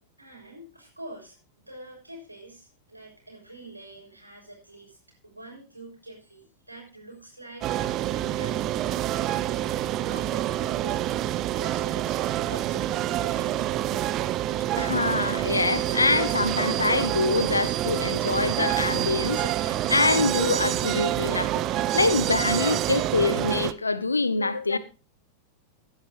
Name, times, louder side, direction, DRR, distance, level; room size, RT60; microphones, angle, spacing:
voice 1, 0.2-1.4 1.7-5.0 5.2-9.3 10.1-11.1 11.5-12.2 12.4-14.3, right 2 dB, 85° right, 6.1 m, -45 dB
sound 1, 7.6-23.7, right 13 dB, 35° right, 0.7 m, -27 dB
voice 2, 14.8-21.6 21.9-24.8, left 3 dB, 80° left, 0.9 m, -25 dB
15.5 x 11.0 x 3.0 m
figure-of-eight pair, 90°, 0 cm